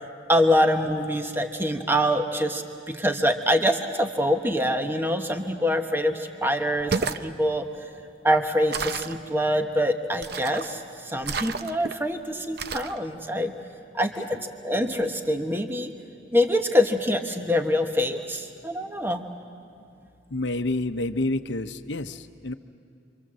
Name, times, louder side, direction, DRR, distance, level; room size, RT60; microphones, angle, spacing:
voice 1, 0.3-7.7 8.2-13.5 13.9-15.9 16.3-19.2, equal, 10° right, 5 dB, 1.1 m, -25 dB
sound 1, 6.7-7.3 8.7-9.2 10.2-10.7 11.2-11.9 12.6-13.0, right 5 dB, 55° right, 0.7 m, -31 dB
voice 2, 20.3-22.2 22.4-22.5, left 2 dB, 70° left, 9 dB, 0.9 m, -28 dB
28.5 x 24.5 x 7.5 m, 2.5 s
head